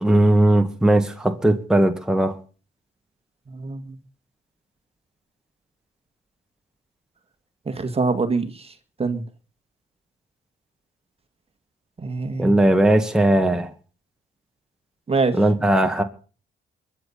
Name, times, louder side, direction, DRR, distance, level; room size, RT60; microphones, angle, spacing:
voice 1, 0.0-2.3 12.4-13.7 15.3-16.0, right 1 dB, 5° right, 4 dB, 1.9 m, -18 dB
voice 2, 7.7-8.5 9.0-9.2 12.0-12.5 15.1-15.3, right 4 dB, 30° right, 8 dB, 1.9 m, -23 dB
22.5 x 8.7 x 5.7 m, 0.39 s
cardioid pair, 90°, 20 cm